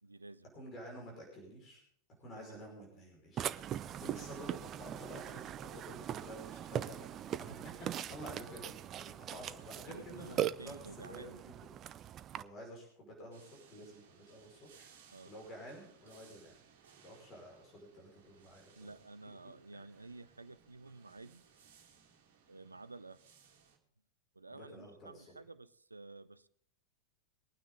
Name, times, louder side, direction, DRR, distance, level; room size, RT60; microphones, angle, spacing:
voice 1, 0.0-0.5 2.3-2.7 9.9-11.4 15.1-15.3 18.7-21.4 22.5-23.3 24.3-26.5, right 3 dB, 80° right, 0.6 m, -52 dB
voice 2, 0.5-1.8 2.2-11.5 12.3-14.9 15.2-16.5 17.0-18.9 24.5-25.3, equal, 30° left, 5.5 m, -51 dB
Burping eructation, 3.4-12.4, right 10 dB, 30° right, 0.5 m, -41 dB
sound 1, 13.3-23.8, right 6 dB, 55° right, 2.4 m, -64 dB
22.5 x 9.3 x 3.9 m
figure-of-eight pair, 90°, 0 cm